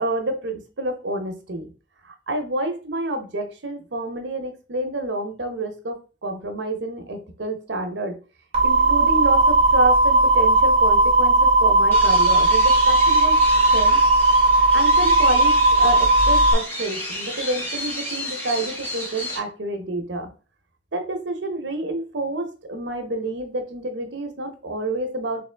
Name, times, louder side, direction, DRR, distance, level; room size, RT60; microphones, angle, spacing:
voice 1, 0.0-1.7 2.0-8.2 8.6-13.4 13.7-14.0 14.7-20.3 20.9-25.4, right 2 dB, 80° right, 5 dB, 0.9 m, -28 dB
sound 1, 8.5-16.5, right 2 dB, 35° right, 1.0 m, -17 dB
sound 2, 11.9-19.4, left 1 dB, 10° left, 1.0 m, -32 dB
3.4 x 3.2 x 3.4 m, 0.34 s
head